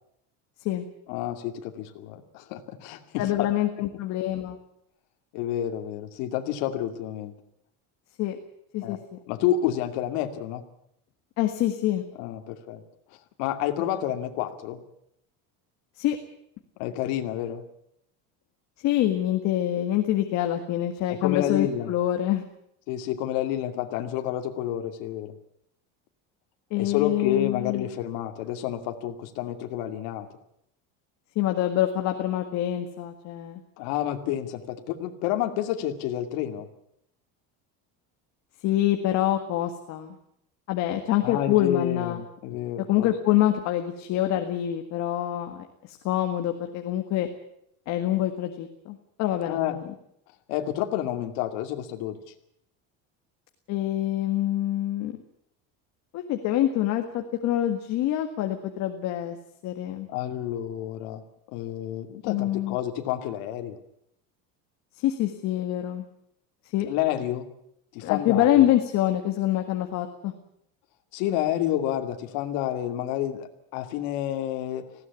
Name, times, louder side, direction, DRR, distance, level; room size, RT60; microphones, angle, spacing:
voice 1, 1.1-3.5 5.3-7.3 8.8-9.0 9.3-10.6 12.2-12.8 13.4-14.8 16.8-17.6 21.2-21.9 22.9-25.4 26.8-30.3 33.8-36.7 41.2-43.1 49.5-49.8 50.5-52.2 60.1-61.2 61.5-63.8 66.9-67.5 67.9-68.7 71.1-74.8, left 11 dB, 70° left, 6 dB, 2.5 m, -29 dB
voice 2, 3.2-4.6 8.2-8.4 8.7-9.0 11.4-12.0 16.0-16.2 18.8-22.5 26.7-27.8 31.4-33.6 38.6-40.2 40.7-42.2 42.9-47.3 47.9-49.8 53.7-55.2 56.1-59.4 59.6-60.1 62.2-62.8 65.0-66.0 66.7-66.9 68.0-70.3, left 12 dB, 45° left, 5 dB, 1.8 m, -26 dB
19.5 x 16.5 x 9.7 m, 0.74 s
cardioid pair, 175°, 37 cm